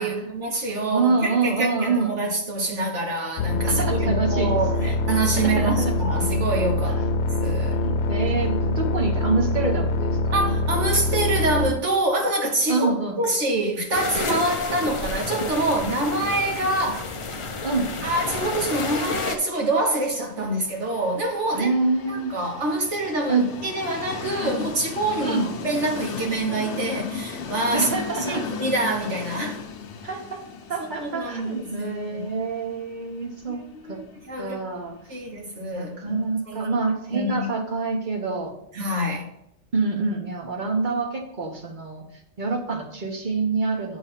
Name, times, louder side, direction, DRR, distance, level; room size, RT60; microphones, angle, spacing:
voice 1, 0.0-7.8 10.3-12.9 13.2-17.1 18.0-21.7 22.1-27.9 28.2-29.6 31.0-32.3 33.5-34.6 35.1-36.7 37.1-37.5 38.7-39.3, right 2 dB, 65° right, 0 dB, 1.4 m, -26 dB
voice 2, 0.9-2.1 3.7-4.9 5.4-6.0 7.8-10.6 12.7-13.2 17.6-17.9 21.5-22.3 23.3-23.5 25.2-25.5 27.7-28.5 30.0-30.4 30.7-33.6 33.9-34.0 34.4-35.0 35.7-38.5 39.7-42.0 42.4-44.0, right 4 dB, 40° right, 2 dB, 1.2 m, -26 dB
sound 1, 3.4-11.7, left 2 dB, 90° left, 1.1 m, -24 dB
sound 2, 13.9-19.4, left 4 dB, 40° left, 0.4 m, -30 dB
Train, 20.2-36.1, left 5 dB, 65° left, 1.0 m, -36 dB
8.2 x 3.1 x 5.7 m, 0.76 s
omnidirectional pair, 1.3 m